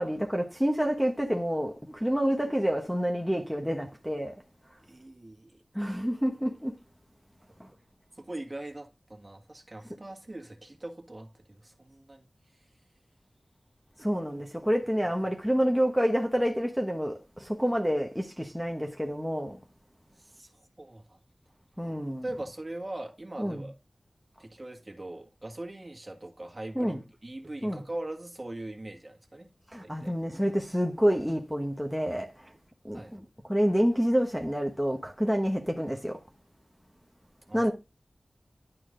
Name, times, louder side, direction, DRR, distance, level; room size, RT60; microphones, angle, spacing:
voice 1, 0.0-4.3 5.7-6.8 7.6-7.7 14.0-19.6 21.8-22.2 23.4-23.6 26.7-27.0 27.6-27.8 29.7-32.5 32.8-36.2 37.5-37.7, equal, ahead, 1.2 m, -28 dB
voice 2, 4.9-5.6 8.2-12.3 14.6-14.7 20.2-20.5 20.8-21.2 22.2-23.7 24.4-26.9 27.2-29.5 29.8-30.1 32.9-33.2 37.5-37.7, right 1 dB, 35° right, 1.7 m, -41 dB
11.0 x 4.6 x 3.8 m
wide cardioid pair, 60°, 0 cm